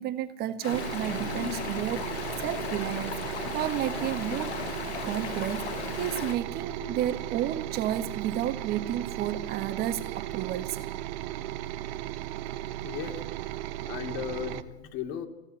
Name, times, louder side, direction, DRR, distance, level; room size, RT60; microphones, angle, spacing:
voice 1, 0.0-4.5 5.0-10.8, right 11 dB, 30° right, 1.6 m, -32 dB
Stream, 0.6-6.4, left 11 dB, 85° left, 1.2 m, -36 dB
sound 1, 0.7-14.6, right 15 dB, 45° right, 1.2 m, -36 dB
voice 2, 12.8-13.6 13.8-15.3, left 9 dB, 40° left, 2.7 m, -37 dB
22.0 x 16.5 x 9.9 m
supercardioid pair, 145°, 32 cm